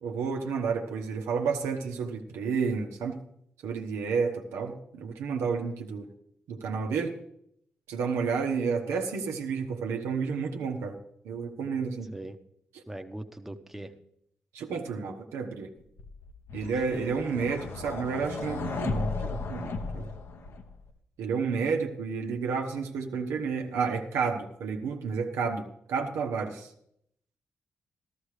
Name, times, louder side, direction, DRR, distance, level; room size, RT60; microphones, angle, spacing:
voice 1, 0.0-3.2 3.6-6.1 6.5-7.2 7.9-11.0 11.2-12.1 14.5-15.7 16.5-20.1 21.2-26.7, right 5 dB, 80° right, 3 dB, 1.0 m, -31 dB
voice 2, 12.9-13.9 16.7-17.1, right 1 dB, 5° right, 7 dB, 1.0 m, -40 dB
sound 1, 16.0-20.9, left 4 dB, 65° left, 1.1 m, -35 dB
13.5 x 13.0 x 3.3 m, 0.72 s
supercardioid pair, 45°, 5 cm